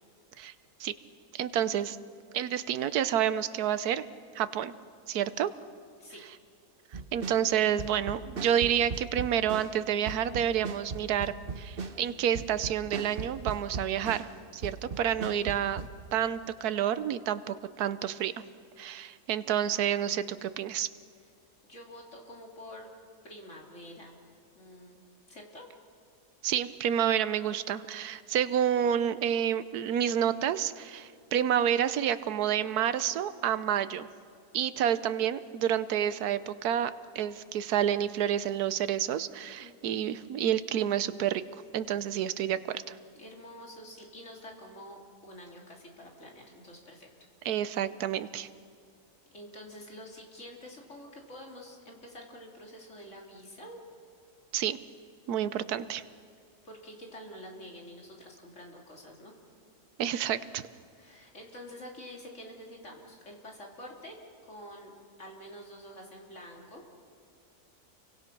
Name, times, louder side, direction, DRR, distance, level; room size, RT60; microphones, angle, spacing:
voice 1, 1.3-2.0 2.3-4.0 4.3-4.7 5.1-5.5 7.1-14.3 14.5-18.3 18.8-20.9 26.4-34.1 34.5-41.4 41.7-43.0 47.4-48.5 54.5-54.8 55.3-56.0 60.0-60.6, right 10 dB, 75° right, 14 dB, 1.3 m, -29 dB
sound 1, 6.9-9.8 10.1-14.4 14.6-15.9, right 4 dB, 40° right, 1.1 m, -38 dB
voice 2, 21.6-22.9 23.2-24.2 24.5-25.0 25.3-25.6 39.6-40.1 43.1-47.1 49.3-53.8 56.6-59.3 60.9-66.8, equal, 45° left, -1 dB, 3.6 m, -47 dB
29.5 x 24.0 x 6.0 m, 2.2 s
omnidirectional pair, 1.7 m